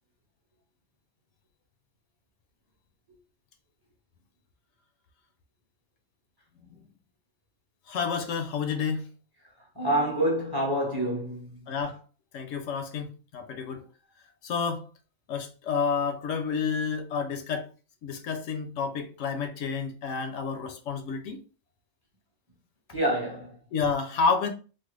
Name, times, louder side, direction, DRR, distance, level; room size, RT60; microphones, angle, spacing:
voice 1, 7.9-9.0 11.7-12.0 12.3-13.8 14.4-14.9 15.3-17.7 18.0-21.4 23.7-24.5, left 5 dB, 75° left, 0.9 m, -29 dB
voice 2, 9.8-11.5 22.9-23.5, right 1 dB, 20° right, 0.7 m, -27 dB
3.2 x 2.1 x 3.0 m
omnidirectional pair, 1.3 m